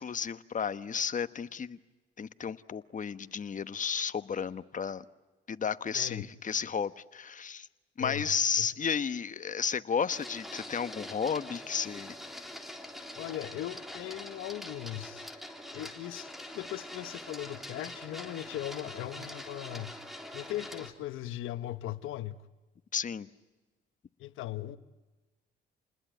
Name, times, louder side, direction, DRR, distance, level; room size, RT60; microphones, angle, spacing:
voice 1, 0.0-1.8 2.2-5.0 5.5-7.7 8.0-12.2 22.9-23.3, left 6 dB, 40° left, 1.2 m, -33 dB
voice 2, 8.0-8.3 8.6-8.7 13.2-15.3 15.7-20.0 20.3-22.4 24.2-24.8, left 13 dB, 90° left, 1.1 m, -39 dB
Printer, 10.1-20.9, left 1 dB, ahead, 3.5 m, -44 dB
29.5 x 20.5 x 9.1 m
cardioid pair, 90°, 20 cm